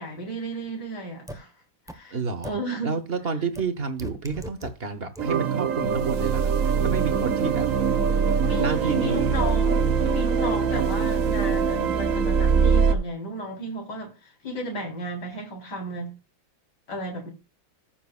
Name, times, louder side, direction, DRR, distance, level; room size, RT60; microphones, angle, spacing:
voice 1, 0.0-1.5 1.9-2.2 2.4-2.9 8.4-16.1 16.9-17.3, equal, 55° left, 4.8 m, -33 dB
sound 1, 1.3-1.4 1.9-2.0 2.4-2.5 3.6-3.7 4.0-4.7 5.2-5.3, equal, 5° right, 0.7 m, -36 dB
voice 2, 2.1-7.7 8.6-9.4, right 4 dB, 35° right, 1.1 m, -30 dB
sound 2, 5.2-12.9, right 6 dB, 55° right, 1.0 m, -23 dB
14.5 x 7.3 x 2.4 m
omnidirectional pair, 2.2 m